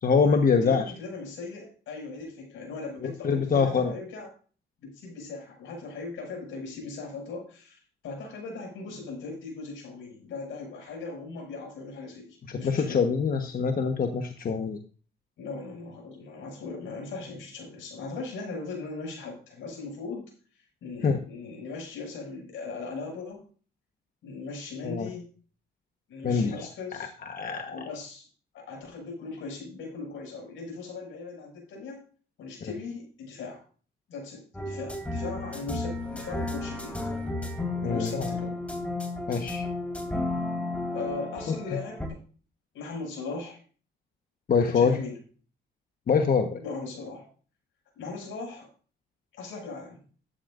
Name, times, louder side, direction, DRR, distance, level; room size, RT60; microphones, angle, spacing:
voice 1, 0.0-0.8 3.2-3.9 12.5-14.8 21.0-21.2 24.8-25.1 26.2-26.7 27.3-27.9 37.8-38.3 39.3-39.7 41.7-41.8 44.5-45.0 46.1-46.6, left 5 dB, 45° left, 5 dB, 1.2 m, -24 dB
voice 2, 0.6-4.3 4.8-13.0 15.4-20.3 20.8-23.4 24.2-25.3 26.1-27.1 27.7-28.2 28.5-32.0 32.4-33.6 34.1-37.0 37.8-38.6 40.9-42.2 42.7-43.6 44.7-45.2 46.6-47.3 47.9-48.7 49.3-50.0, left 3 dB, 80° left, 1 dB, 6.6 m, -39 dB
sound 1, 34.5-42.1, left 2 dB, 5° left, 3.2 m, -33 dB
13.0 x 11.5 x 2.6 m, 0.39 s
cardioid pair, 90°, 20 cm